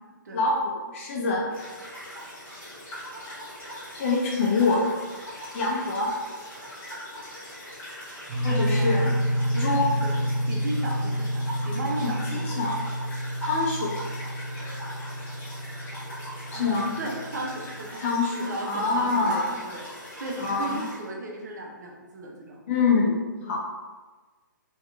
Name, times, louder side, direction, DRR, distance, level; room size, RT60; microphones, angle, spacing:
voice 1, 0.3-1.5 3.9-4.9 5.5-6.1 8.4-9.1 9.6-9.9 12.0-12.1 12.4-12.8 13.4-14.0 16.5-16.9 18.0-19.5 20.4-20.8 22.7-23.6, left 3 dB, 40° left, -2 dB, 0.6 m, -25 dB
sound 1, 1.5-21.1, equal, 15° left, 1.0 m, -41 dB
sound 2, 8.3-17.8, equal, 20° right, 1.3 m, -29 dB
voice 2, 8.4-9.2 9.5-10.2 10.5-12.6 16.5-18.1 18.3-19.9 20.2-22.6, right 2 dB, 55° right, 0 dB, 0.6 m, -35 dB
2.8 x 2.3 x 2.4 m, 1.3 s
figure-of-eight pair, 130°, 11 cm